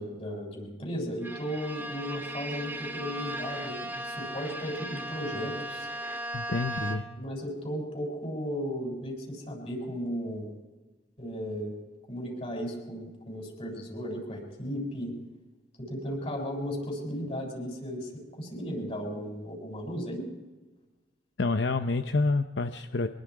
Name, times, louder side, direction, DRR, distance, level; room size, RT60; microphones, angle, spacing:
voice 1, 0.0-5.9 7.1-10.5 11.2-11.7 12.1-15.1 15.8-18.1 18.4-20.2, equal, 35° left, 0 dB, 7.4 m, -35 dB
Bowed string instrument, 1.2-7.3, right 1 dB, 10° right, 2.1 m, -37 dB
voice 2, 6.3-7.0 21.4-23.1, left 3 dB, 75° left, 9 dB, 0.8 m, -28 dB
24.5 x 22.5 x 4.9 m, 1.2 s
head